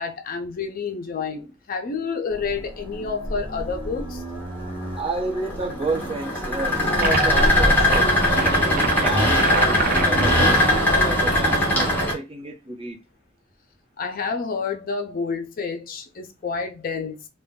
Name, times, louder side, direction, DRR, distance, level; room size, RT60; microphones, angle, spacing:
voice 1, 0.0-4.2 14.0-17.3, left 5 dB, 45° left, 0.4 m, -29 dB
sound 1, 2.3-12.1, left 1 dB, 10° left, 0.9 m, -21 dB
voice 2, 4.9-13.0, right 2 dB, 30° right, 0.8 m, -30 dB
sound 2, 7.0-7.4 7.8-10.4, right 5 dB, 45° right, 0.4 m, -27 dB
2.5 x 2.1 x 3.6 m
head